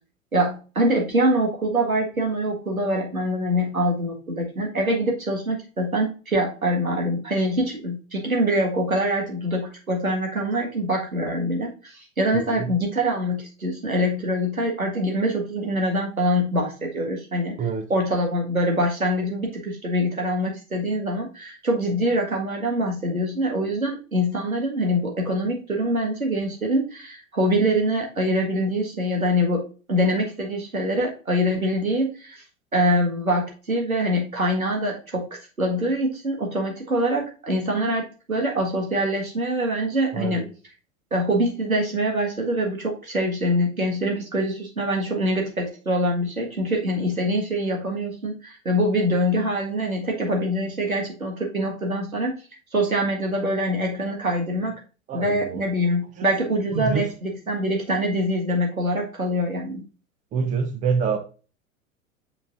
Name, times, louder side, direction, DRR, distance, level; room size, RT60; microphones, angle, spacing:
voice 1, 0.3-17.6 17.9-29.6 29.9-32.4 32.7-40.5 41.1-52.3 52.7-54.8 55.1-59.8, equal, 85° right, 1 dB, 1.7 m, -24 dB
voice 2, 12.3-12.7 17.6-17.9 40.1-40.5 55.1-55.6 56.7-57.1 60.3-61.2, right 6 dB, 20° right, 7 dB, 0.5 m, -26 dB
6.8 x 5.5 x 2.5 m, 0.35 s
figure-of-eight pair, 90°, 41 cm